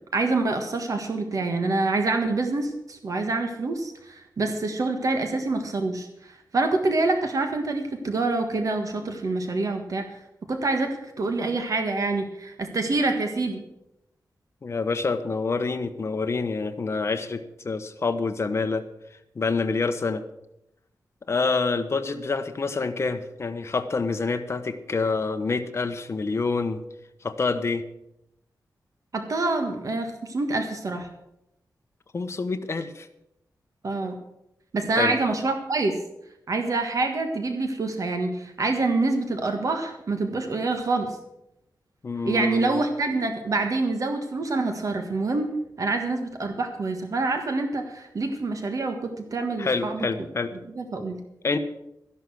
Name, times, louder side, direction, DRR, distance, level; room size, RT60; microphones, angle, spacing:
voice 1, 0.1-10.2 10.5-13.6 29.1-31.1 33.8-34.1 34.7-36.0 36.5-41.2 42.2-45.5 45.8-50.1 50.7-51.2, right 3 dB, 55° right, 5 dB, 1.6 m, -26 dB
voice 2, 14.6-18.8 19.3-20.2 21.3-26.8 27.2-27.8 32.1-33.1 35.0-35.2 42.0-42.8 49.6-50.5 51.4-51.6, left 4 dB, 40° left, 8 dB, 1.1 m, -27 dB
13.0 x 11.5 x 6.3 m, 0.82 s
wide cardioid pair, 170°, 7 cm